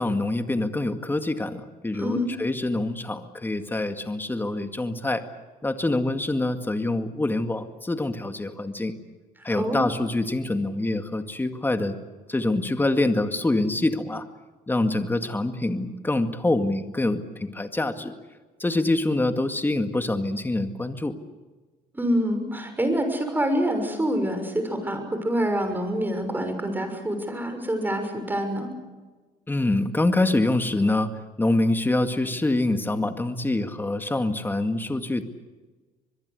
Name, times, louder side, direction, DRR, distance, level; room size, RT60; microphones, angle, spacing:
voice 1, 0.0-5.2 5.6-8.9 9.4-12.0 12.3-14.3 14.7-18.1 18.6-21.1 29.5-31.1 31.4-35.2, left 2 dB, 10° left, 7 dB, 2.1 m, -25 dB
voice 2, 1.9-2.3 9.6-9.8 21.9-28.7, equal, 10° right, 6 dB, 6.2 m, -26 dB
24.5 x 22.0 x 8.2 m, 1.3 s
cardioid pair, 110°, 17 cm